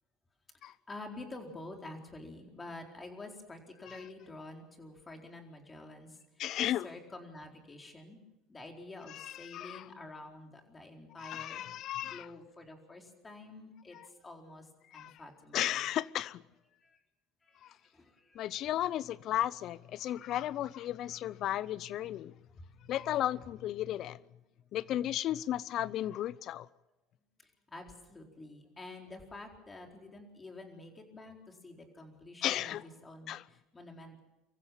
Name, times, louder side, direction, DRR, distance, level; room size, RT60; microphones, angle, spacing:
voice 1, 0.7-6.5 6.8-8.2 8.5-11.6 12.1-15.8 16.8-17.0 17.4-18.5 22.4-22.7 27.4-34.2, left 2 dB, 20° left, 4.3 m, -49 dB
voice 2, 6.4-6.9 9.1-9.8 11.2-12.3 14.9-15.1 15.5-16.4 17.6-17.7 18.3-22.3 22.9-24.2 24.7-26.7 32.4-32.8 33.3-33.4, left 12 dB, 55° left, 0.6 m, -34 dB
24.5 x 15.0 x 7.3 m
hypercardioid pair, 85°, 0 cm